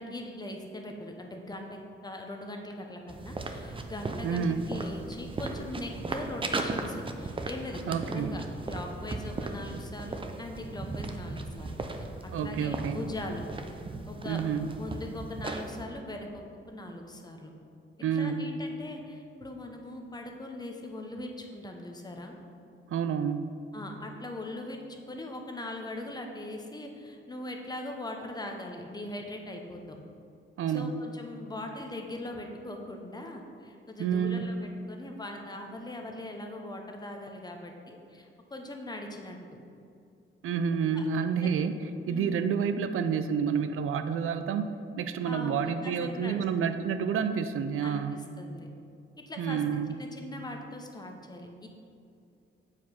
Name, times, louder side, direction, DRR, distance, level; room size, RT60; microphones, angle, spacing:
voice 1, 0.0-13.5 14.1-17.5 18.1-22.4 23.7-30.0 30.7-39.4 40.9-41.0 41.4-41.5 42.1-42.5 45.2-46.4 47.8-48.7 49.3-49.6 50.0-51.7, left 1 dB, 20° left, 2 dB, 0.8 m, -40 dB
sound 1, 3.1-15.8, right 3 dB, 25° right, 0.5 m, -37 dB
voice 2, 4.2-4.7 7.9-8.4 12.3-13.0 14.3-14.7 18.0-18.5 22.9-23.5 30.6-31.0 34.0-34.5 40.4-41.7 42.1-44.7 45.0-48.2 49.4-50.0, right 7 dB, 85° right, 9 dB, 0.5 m, -29 dB
7.4 x 4.9 x 5.8 m, 2.5 s
wide cardioid pair, 135°, 21 cm